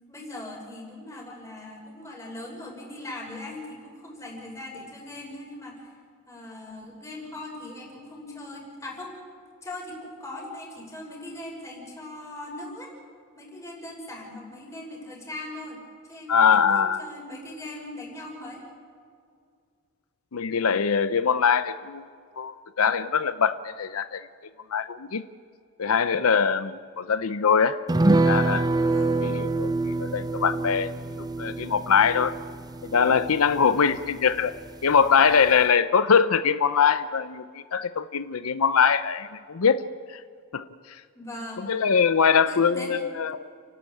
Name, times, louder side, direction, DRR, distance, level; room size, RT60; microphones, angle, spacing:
voice 1, 0.1-5.9 6.3-9.2 9.6-12.9 13.4-15.8 16.1-18.6 28.9-29.3 41.1-41.7 42.3-43.0, left 1 dB, 15° left, -2 dB, 5.8 m, -40 dB
voice 2, 16.3-17.0 20.3-22.1 22.4-24.3 24.7-25.2 25.8-27.8 28.2-28.6 29.2-30.9 31.4-32.3 32.8-34.5 34.8-39.8 40.1-40.2 40.5-41.0 41.6-43.5, left 6 dB, 85° left, 13 dB, 0.7 m, -22 dB
sound 1, 27.9-34.7 35.0-35.1 35.4-35.6, right 2 dB, 20° right, 0.5 m, -26 dB
30.0 x 12.0 x 8.7 m, 2.2 s
head